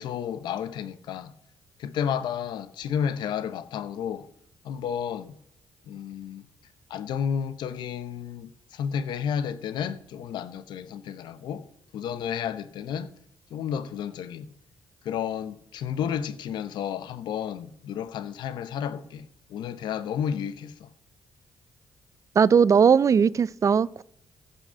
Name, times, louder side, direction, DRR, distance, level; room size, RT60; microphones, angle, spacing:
voice 1, 0.0-1.3 1.8-4.3 4.6-5.4 5.9-6.4 6.9-11.7 11.9-13.1 13.5-14.5 15.0-20.9, left 8 dB, 75° left, 0.8 m, -32 dB
voice 2, 22.4-24.0, right 6 dB, 45° right, 0.4 m, -19 dB
15.0 x 5.6 x 7.1 m
supercardioid pair, 55°, 8 cm